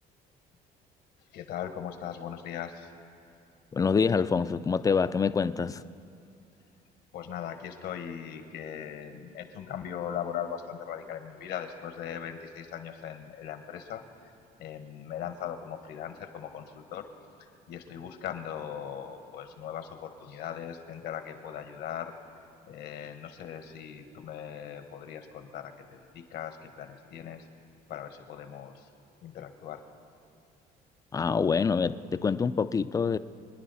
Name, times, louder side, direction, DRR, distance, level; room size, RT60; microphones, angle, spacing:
voice 1, 1.3-2.9 7.1-14.3 14.6-17.1 17.7-22.1 22.6-27.5 27.9-28.9 29.2-29.8, left 9 dB, 80° left, 7 dB, 1.4 m, -39 dB
voice 2, 3.7-5.8 31.1-33.2, left 5 dB, 20° left, 14 dB, 0.4 m, -26 dB
26.0 x 10.5 x 4.2 m, 2.6 s
cardioid pair, 110°, 17 cm